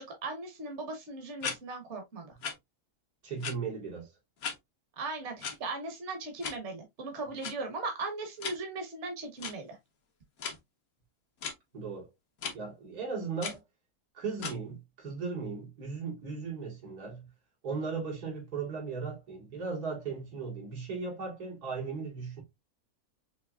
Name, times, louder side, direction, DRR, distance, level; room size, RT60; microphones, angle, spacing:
voice 1, 0.0-2.3 5.0-9.8, right 3 dB, 50° right, 1.3 m, -38 dB
sound 1, 1.4-1.6 2.4-2.5 3.4-3.5 4.4-4.5 5.4-5.6 6.4-6.6 7.4-7.5 8.4-8.6 9.4-9.5 10.4-10.6 11.4-11.5 12.4-12.5 13.4-13.6 14.4-14.6, left 6 dB, 70° left, 1.5 m, -35 dB
voice 2, 3.2-4.1 11.7-12.1 12.5-13.6 14.1-17.3 17.6-22.4, right 5 dB, 80° right, 2.5 m, -37 dB
5.9 x 3.0 x 2.3 m
omnidirectional pair, 1.6 m